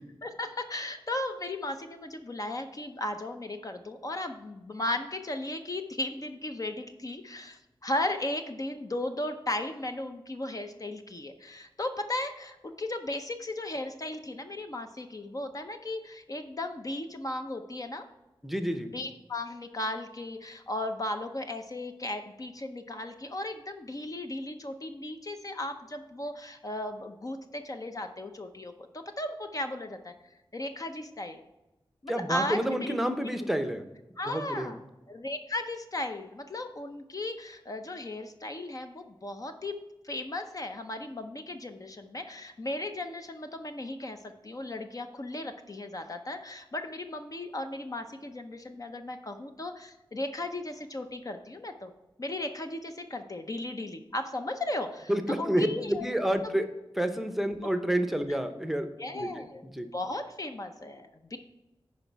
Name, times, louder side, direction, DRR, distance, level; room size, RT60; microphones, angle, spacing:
voice 1, 0.2-18.0 18.9-30.1 30.5-31.4 32.0-33.3 34.2-34.8 35.1-39.8 40.0-51.9 52.2-55.1 55.4-56.1 59.0-59.7 59.9-61.4, left 1 dB, 40° left, 6 dB, 0.6 m, -36 dB
voice 2, 18.4-18.9 32.1-33.8 34.3-34.8 55.1-56.7 57.0-58.9 59.1-59.5 59.7-59.9, right 1 dB, ahead, 7 dB, 0.7 m, -29 dB
9.5 x 5.1 x 4.6 m, 1.0 s
wide cardioid pair, 100°, 9 cm